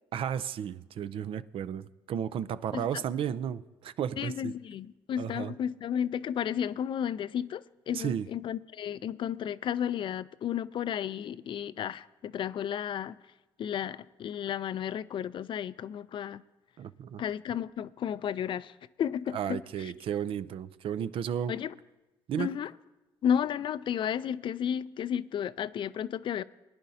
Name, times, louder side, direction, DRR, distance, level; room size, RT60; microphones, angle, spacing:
voice 1, 0.1-4.5 5.2-5.5 7.9-8.3 16.8-17.2 19.3-21.6 22.3-22.5, right 9 dB, 60° right, 0.5 m, -33 dB
voice 2, 2.7-3.0 4.2-13.2 13.6-16.4 17.2-19.9 21.5-21.7 22.4-22.7 23.2-26.4, left 9 dB, 55° left, 0.4 m, -33 dB
22.0 x 10.0 x 2.8 m
supercardioid pair, 70°, 10 cm